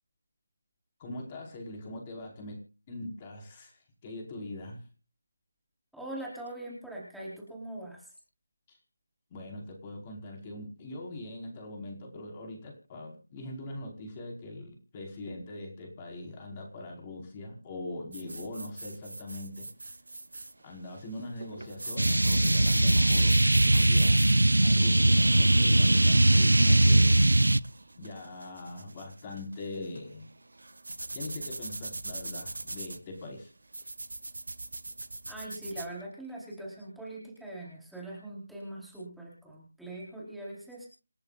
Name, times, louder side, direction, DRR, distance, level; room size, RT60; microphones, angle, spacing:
voice 1, 1.0-2.6 2.9-4.8 8.7-8.8 9.3-19.7 20.6-27.2 28.0-30.3 31.1-33.5, left 1 dB, 20° left, 1 dB, 5.2 m, -42 dB
voice 2, 5.9-8.1 35.3-40.9, right 1 dB, ahead, -6 dB, 4.6 m, -42 dB
sound 1, 18.1-35.9, right 2 dB, 65° right, 1.9 m, -42 dB
sound 2, 22.0-27.6, right 1 dB, 80° right, 0.7 m, -21 dB
28.5 x 10.5 x 2.6 m, 0.34 s
figure-of-eight pair, 160°, 0 cm